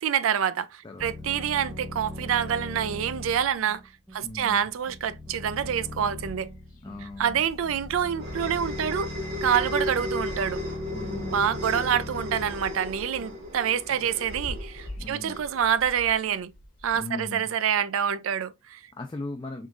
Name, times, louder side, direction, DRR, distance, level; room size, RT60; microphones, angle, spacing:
voice 1, 0.0-3.8 4.1-6.5 7.2-9.1 9.4-10.6 11.3-16.5 16.8-18.8, right 8 dB, 80° right, 0.4 m, -27 dB
sound 1, 1.0-13.5, left 2 dB, ahead, 0.8 m, -40 dB
sound 2, 4.1-4.7 5.1-5.2 5.4-9.4 10.0-10.8 11.1-17.0, left 1 dB, 40° left, 1.0 m, -46 dB
voice 2, 4.2-4.6 6.8-7.4 10.9-11.5 15.0-15.5 16.9-17.5 19.0-19.7, left 2 dB, 20° left, 0.3 m, -38 dB
sound 3, 7.3-16.1, left 1 dB, 50° right, 1.1 m, -36 dB
3.7 x 3.6 x 2.4 m
head